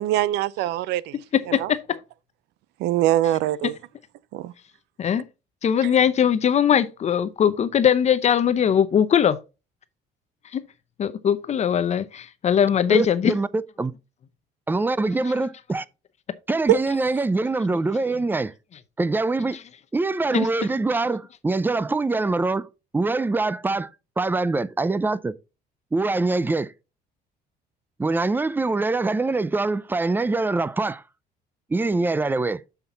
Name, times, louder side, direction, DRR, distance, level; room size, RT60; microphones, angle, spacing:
voice 1, 0.0-1.2 1.5-1.7 2.8-3.8 4.3-4.5 5.8-5.9, right 14 dB, 85° right, 0.5 m, -23 dB
voice 2, 1.1-2.0 3.2-3.3 5.0-5.2 5.6-9.4 10.5-10.6 11.0-13.3 15.1-15.3 20.3-20.5, left 8 dB, 40° left, 0.6 m, -21 dB
voice 3, 12.9-13.9 14.7-15.9 16.5-18.5 19.0-19.6 19.9-23.9 24.2-25.3 25.9-26.7 28.0-31.0 31.7-32.6, right 3 dB, 10° right, 0.4 m, -24 dB
7.1 x 5.8 x 3.8 m
cardioid pair, 110°, 17 cm